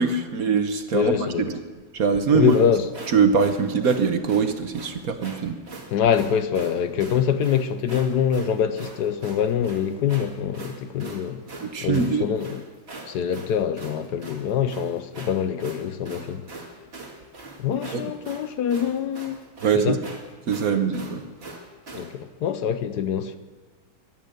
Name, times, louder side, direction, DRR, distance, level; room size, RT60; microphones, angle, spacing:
voice 1, 0.0-1.6 1.9-2.6 3.1-5.6 11.6-12.3 17.9-18.0 19.6-20.0 20.5-21.2, right 6 dB, 55° right, 1.3 m, -22 dB
voice 2, 0.9-1.5 2.3-2.9 5.9-11.4 11.8-12.6 13.0-16.4 17.6-19.5 19.7-20.0 21.9-23.4, left 8 dB, 70° left, 1.2 m, -24 dB
sound 1, 2.4-22.1, right 3 dB, 35° right, 2.4 m, -42 dB
22.5 x 9.3 x 6.6 m
omnidirectional pair, 2.0 m